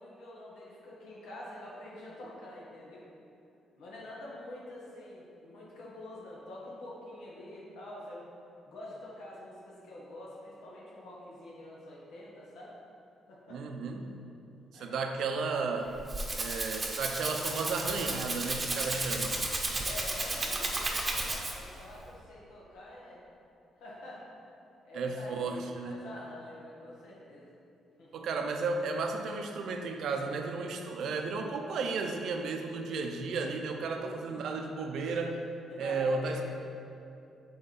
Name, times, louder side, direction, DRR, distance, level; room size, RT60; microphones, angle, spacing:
voice 1, 0.0-3.1 3.8-8.3 8.6-12.8 13.3-13.6 14.7-15.0 18.9-23.2 23.8-24.3 24.8-27.5 28.0-28.1 33.9-34.5 35.7-36.4, left 1 dB, 85° left, -6 dB, 1.3 m, -46 dB
voice 2, 13.5-14.1 14.7-15.9 16.4-19.4 24.9-26.0 28.1-35.4 35.8-36.4, right 4 dB, 70° right, 4 dB, 0.5 m, -33 dB
Rattle (instrument), 15.8-21.8, right 2 dB, 25° right, 0.8 m, -33 dB
7.8 x 3.1 x 4.1 m, 2.6 s
cardioid pair, 90°, 0 cm